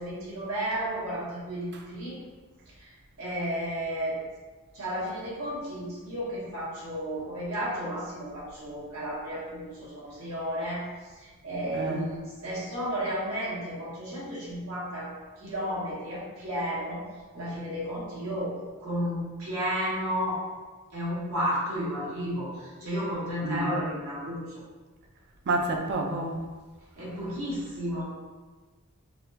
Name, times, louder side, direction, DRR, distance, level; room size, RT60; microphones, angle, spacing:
voice 1, 0.0-2.2 2.8-2.9 3.2-4.2 4.7-10.8 11.2-15.1 15.4-17.0 17.3-20.4 20.9-24.4 27.0-28.0, equal, 75° right, -8 dB, 1.3 m, -32 dB
voice 2, 11.7-12.1 23.4-23.8 25.5-26.4, right 2 dB, 50° right, 2 dB, 0.4 m, -29 dB
3.9 x 2.3 x 2.7 m, 1.3 s
head